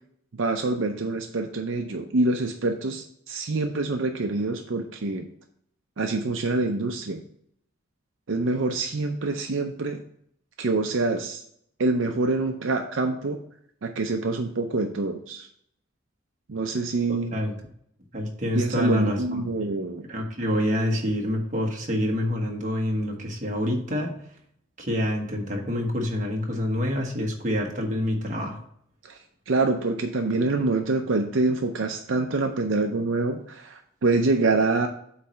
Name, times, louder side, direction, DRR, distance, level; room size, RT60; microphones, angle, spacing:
voice 1, 0.3-5.3 6.0-7.2 8.3-10.0 10.6-11.4 11.8-13.4 13.8-15.5 16.5-17.3 18.5-20.0 29.0-29.2 29.5-34.9, right 3 dB, 70° right, 4 dB, 0.6 m, -26 dB
voice 2, 17.1-17.5 18.1-19.7 20.1-24.2 24.8-28.6, left 1 dB, 40° right, 0 dB, 1.3 m, -27 dB
8.2 x 3.2 x 5.6 m, 0.68 s
head